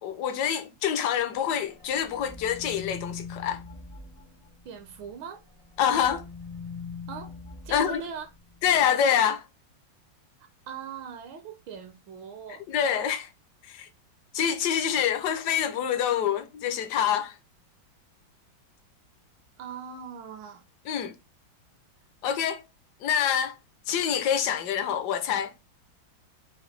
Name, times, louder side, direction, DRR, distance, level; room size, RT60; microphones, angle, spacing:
voice 1, 0.0-3.6 5.8-6.2 7.7-8.0 8.6-9.4 12.7-13.3 13.7-13.9 14.3-17.4 20.9-21.2 22.2-22.6 23.0-23.6 23.9-25.5, left 9 dB, 70° left, 1.0 m, -26 dB
sound 1, 1.2-5.1 5.4-8.8, left 5 dB, 35° left, 0.5 m, -43 dB
voice 2, 4.6-5.4 7.1-7.3 7.6-8.3 10.4-12.6 19.6-20.6, right 6 dB, 75° right, 1.3 m, -40 dB
5.7 x 2.6 x 3.1 m
omnidirectional pair, 2.2 m